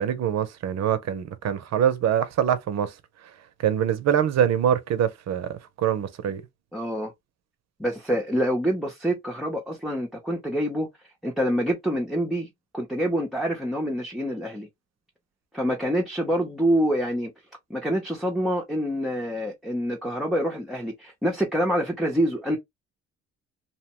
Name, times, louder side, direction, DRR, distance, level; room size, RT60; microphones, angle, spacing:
voice 1, 0.0-2.9 3.6-6.4, right 9 dB, 60° right, 0.6 m, -24 dB
voice 2, 6.7-7.1 7.8-10.9 11.2-14.7 15.5-17.3 17.7-22.6, equal, ahead, 0.6 m, -26 dB
2.8 x 2.1 x 2.9 m
cardioid pair, 90°, 30 cm